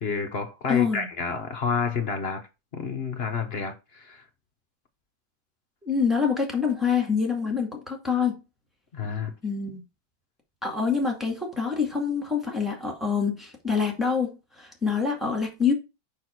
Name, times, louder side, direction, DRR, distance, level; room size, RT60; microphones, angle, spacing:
voice 1, 0.0-2.5 2.7-4.2 8.9-9.3, left 5 dB, 50° left, 0.7 m, -29 dB
voice 2, 0.7-1.1 5.8-8.3 9.4-9.8 10.6-14.3 14.6-15.7, left 6 dB, ahead, 2.0 m, -26 dB
6.3 x 5.7 x 4.5 m
omnidirectional pair, 2.1 m